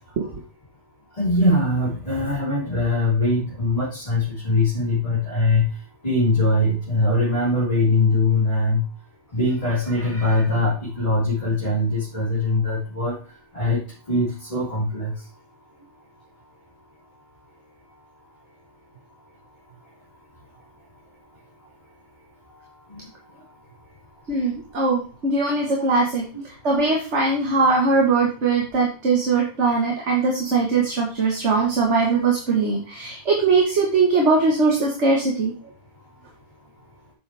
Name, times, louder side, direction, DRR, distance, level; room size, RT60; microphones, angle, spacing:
voice 1, 1.2-5.7 6.0-8.8 9.3-13.1 13.5-13.8 14.1-15.1 22.9-23.0, left 2 dB, 30° left, -9 dB, 4.2 m, -21 dB
voice 2, 24.3-26.3 26.6-35.5, right 3 dB, 70° right, -1 dB, 1.8 m, -20 dB
9.9 x 7.2 x 3.4 m, 0.37 s
omnidirectional pair, 1.2 m